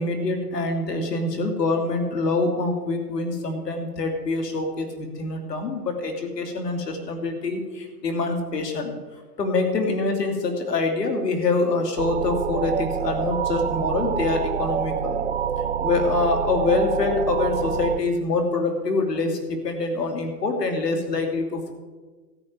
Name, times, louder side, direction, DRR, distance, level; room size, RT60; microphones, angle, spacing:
voice 1, 0.0-8.9 9.4-15.2 15.8-21.7, left 3 dB, 90° left, 4 dB, 2.8 m, -25 dB
sound 1, 12.0-18.0, right 8 dB, 50° right, 0.4 m, -26 dB
13.5 x 6.4 x 8.9 m, 1.3 s
hypercardioid pair, 180°, 47 cm